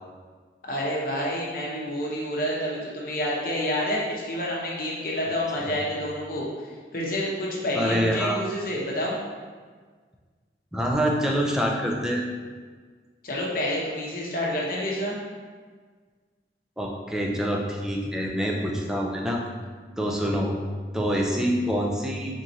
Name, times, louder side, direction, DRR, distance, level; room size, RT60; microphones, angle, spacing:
voice 1, 0.7-9.2 13.2-15.1, left 1 dB, 50° left, -4 dB, 0.8 m, -28 dB
voice 2, 7.7-8.4 10.7-12.3 16.8-19.4 20.0-20.5 20.9-22.4, equal, 5° right, -1 dB, 0.4 m, -26 dB
4.3 x 3.7 x 2.7 m, 1.5 s
head